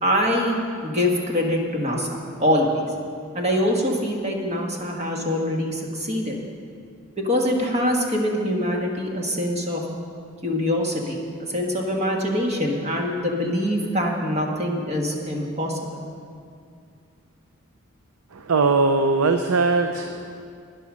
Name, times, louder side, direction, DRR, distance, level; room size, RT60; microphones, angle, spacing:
voice 1, 0.0-0.6 0.8-2.1 2.4-2.8 3.3-6.3 7.2-9.8 10.4-11.2 11.5-15.8, left 1 dB, 30° right, 0 dB, 1.5 m, -24 dB
voice 2, 18.3-20.4, right 3 dB, 90° right, 7 dB, 0.6 m, -21 dB
11.0 x 10.5 x 6.2 m, 2.4 s
head